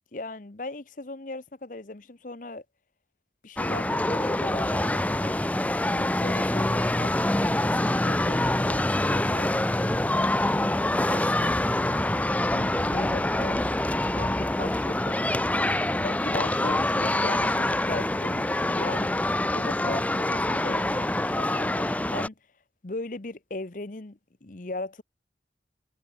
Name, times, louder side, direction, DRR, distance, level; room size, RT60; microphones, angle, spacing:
voice 1, 0.1-2.6 3.4-5.4 5.9-11.6 12.5-13.8 14.1-15.1 16.0-19.1 19.5-22.3 22.8-25.0, left 2 dB, 45° left, 1.0 m, -38 dB
sound 1, 3.6-22.3, left 1 dB, 10° left, 0.5 m, -25 dB
head